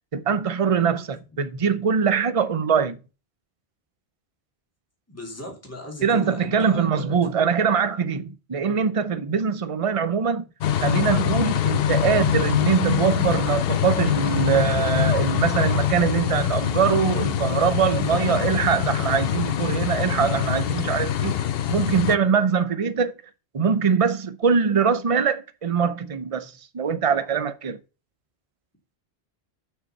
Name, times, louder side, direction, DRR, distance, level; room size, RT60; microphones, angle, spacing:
voice 1, 0.1-3.0 6.0-10.4 10.8-21.4 21.7-23.1 23.5-27.8, right 6 dB, 35° right, 0.8 m, -23 dB
voice 2, 5.1-7.1, left 1 dB, 15° left, 2.8 m, -37 dB
sound 1, 10.6-22.2, left 10 dB, 65° left, 0.8 m, -24 dB
6.9 x 5.9 x 6.6 m
omnidirectional pair, 1.1 m